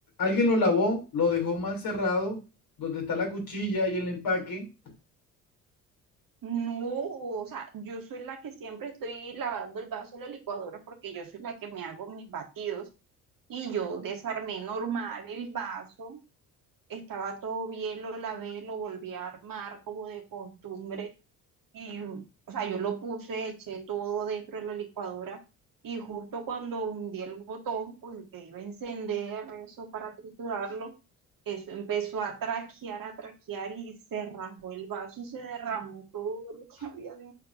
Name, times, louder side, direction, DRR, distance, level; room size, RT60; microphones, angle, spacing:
voice 1, 0.2-2.4 2.8-4.7, left 2 dB, 50° left, 2 dB, 3.0 m, -27 dB
voice 2, 6.4-12.9 13.5-16.2 16.9-21.1 21.7-25.4 25.8-30.9 31.5-37.3, right 6 dB, 45° right, 3 dB, 1.9 m, -36 dB
8.6 x 4.4 x 2.5 m, 0.29 s
figure-of-eight pair, 50°, 45 cm